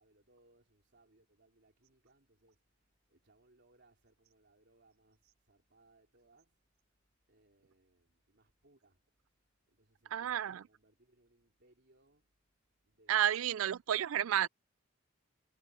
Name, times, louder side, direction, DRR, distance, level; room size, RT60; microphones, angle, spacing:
voice 1, 0.0-6.7 7.3-9.1 9.6-12.3 12.8-13.9, right 2 dB, 60° right, 3.7 m, -69 dB
voice 2, 10.1-10.6 13.1-14.5, right 10 dB, 85° right, 0.4 m, -31 dB
head